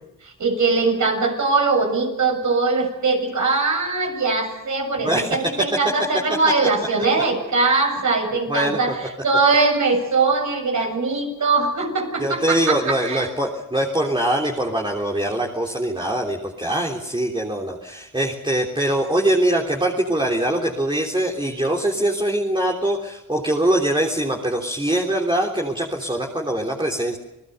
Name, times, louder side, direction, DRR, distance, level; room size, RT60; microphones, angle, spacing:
voice 1, 0.4-8.9 9.2-13.3, right 3 dB, 55° right, 3 dB, 7.5 m, -21 dB
voice 2, 5.0-5.7 8.5-8.9 12.2-27.2, right 1 dB, 15° right, 0 dB, 3.4 m, -23 dB
28.5 x 19.0 x 6.8 m, 0.96 s
supercardioid pair, 60°, 35 cm